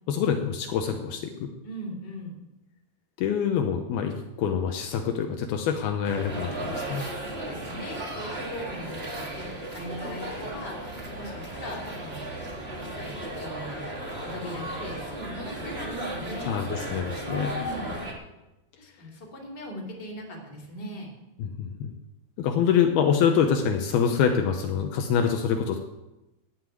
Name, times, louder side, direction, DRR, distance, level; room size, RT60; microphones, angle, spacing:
voice 1, 0.1-1.5 3.2-7.1 16.5-17.5 21.4-21.9 22.4-25.8, left 7 dB, 80° left, 5 dB, 2.7 m, -25 dB
voice 2, 1.6-2.3 7.3-13.8 14.2-16.6 17.2-18.0 18.8-21.1, equal, 30° left, -1 dB, 3.0 m, -40 dB
sound 1, 6.0-18.1, right 1 dB, 25° right, 1.3 m, -35 dB
13.0 x 6.7 x 9.1 m, 0.97 s
omnidirectional pair, 4.5 m